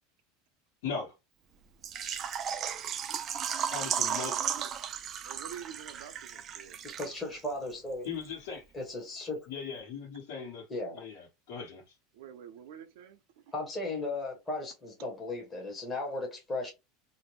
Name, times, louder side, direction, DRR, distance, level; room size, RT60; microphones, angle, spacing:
voice 1, 0.8-1.1 3.7-4.3 8.0-8.6 9.5-10.7 10.9-11.8, left 5 dB, 75° left, 1.2 m, -38 dB
Water / Liquid, 1.8-7.4 7.7-7.8 8.2-8.3, right 8 dB, 25° right, 0.3 m, -35 dB
voice 2, 3.9-4.7 5.2-6.8 12.1-13.4, right 9 dB, 70° right, 0.6 m, -48 dB
voice 3, 6.9-8.1 8.7-9.5 10.7-11.0 13.5-16.7, left 2 dB, 10° left, 0.8 m, -36 dB
2.5 x 2.1 x 3.0 m
supercardioid pair, 165°, 0 cm